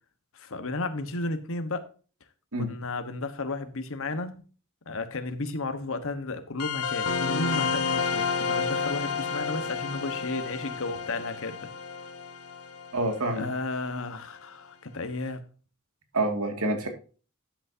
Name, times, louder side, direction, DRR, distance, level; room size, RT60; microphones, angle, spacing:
voice 1, 0.3-1.9 2.6-4.4 4.9-11.7 13.4-15.4, left 2 dB, 65° left, 1.3 m, -33 dB
sound 1, 6.6-13.7, left 5 dB, 90° left, 1.3 m, -30 dB
voice 2, 12.9-13.5 16.1-16.9, right 2 dB, 80° right, 2.3 m, -27 dB
12.0 x 8.2 x 2.8 m
head